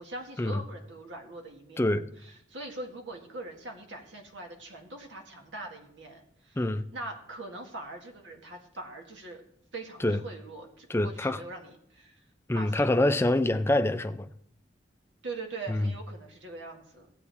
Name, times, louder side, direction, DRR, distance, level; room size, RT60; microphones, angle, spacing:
voice 1, 0.0-1.9 2.2-6.6 6.9-9.4 9.7-12.3 12.5-13.3 15.2-17.1, right 2 dB, 85° right, 2.0 m, -42 dB
voice 2, 1.8-2.1 6.6-6.9 10.0-10.2 10.9-11.4 12.5-14.3 15.7-15.9, left 1 dB, 15° left, 0.4 m, -26 dB
16.5 x 8.5 x 3.5 m
head